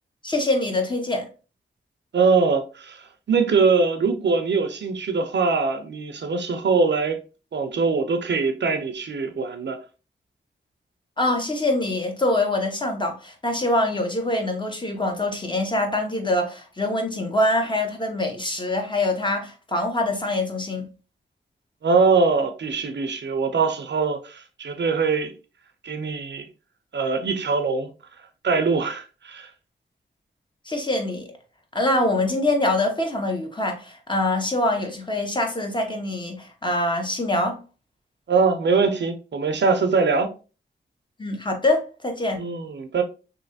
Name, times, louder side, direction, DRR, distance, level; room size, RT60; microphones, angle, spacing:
voice 1, 0.2-1.3 11.2-20.9 30.7-31.3 31.7-37.6 41.2-42.5, left 1 dB, 25° left, 0.9 m, -24 dB
voice 2, 2.1-7.2 7.5-9.8 21.8-25.3 25.8-26.5 26.9-27.9 28.4-29.5 38.3-40.3 42.4-43.0, right 4 dB, 65° right, 0.6 m, -22 dB
3.1 x 2.7 x 2.6 m
cardioid pair, 50°, 20 cm